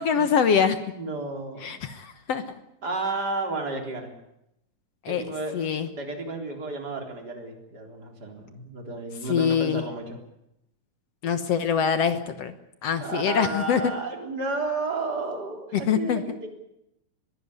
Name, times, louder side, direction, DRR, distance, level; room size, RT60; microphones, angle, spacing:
voice 1, 0.0-0.8 1.6-2.4 5.1-5.2 5.5-5.9 9.3-9.9 11.2-12.5 12.8-13.8 15.7-16.2, left 7 dB, 60° left, 10 dB, 1.9 m, -24 dB
voice 2, 0.9-1.8 2.8-4.1 5.1-10.2 13.0-16.5, right 3 dB, 30° right, 3 dB, 4.1 m, -32 dB
22.0 x 16.0 x 9.8 m, 0.82 s
omnidirectional pair, 3.9 m